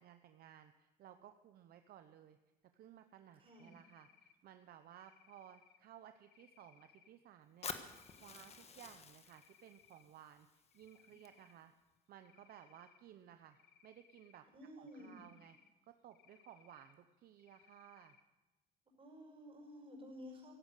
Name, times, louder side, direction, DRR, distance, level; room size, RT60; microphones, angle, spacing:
voice 1, 0.0-2.4 2.7-11.7 12.1-14.5 14.8-15.6 15.8-18.2, right 10 dB, 65° right, 8 dB, 0.8 m, -59 dB
voice 2, 3.4-3.7 14.5-15.2 19.0-20.6, left 1 dB, 35° right, 2 dB, 5.7 m, -53 dB
Cricket, 3.5-4.4 4.9-5.8 6.2-7.1 7.8-8.6 9.1-10.0 10.4-11.6 12.2-13.0 13.5-14.4 14.9-15.7 16.1-16.9 17.4-18.2, left 9 dB, 70° left, 1.4 m, -68 dB
Fire, 7.6-11.6, left 6 dB, 40° left, 1.5 m, -51 dB
16.0 x 12.0 x 6.6 m, 1.1 s
cardioid pair, 110°, 17 cm